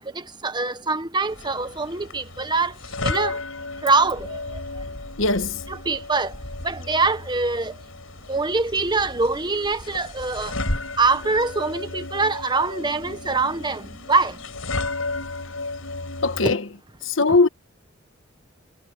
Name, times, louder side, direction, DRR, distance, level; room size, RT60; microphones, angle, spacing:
voice 1, 0.0-2.7 3.0-3.4 3.8-4.4 5.7-6.3 6.6-7.7 8.3-10.5 11.0-14.4, right 3 dB, 20° right, 1.3 m, -24 dB
sound 1, 1.3-16.6, left 2 dB, 90° left, 6.2 m, -34 dB
voice 2, 5.2-5.6 16.2-16.6 17.0-17.5, left 3 dB, 75° left, 1.3 m, -20 dB
head